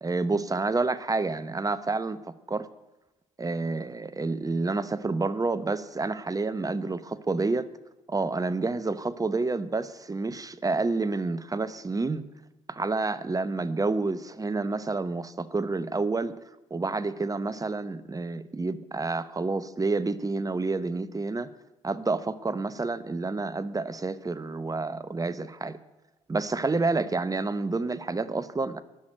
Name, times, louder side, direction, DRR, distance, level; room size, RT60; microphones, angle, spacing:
voice 1, 0.0-2.2 2.5-2.7 3.4-7.7 8.1-12.3 12.7-16.3 16.7-21.5 21.8-25.8 26.3-28.8, right 3 dB, 25° right, 15 dB, 0.9 m, -29 dB
11.5 x 6.2 x 8.9 m, 0.99 s
hypercardioid pair, 50°, 16 cm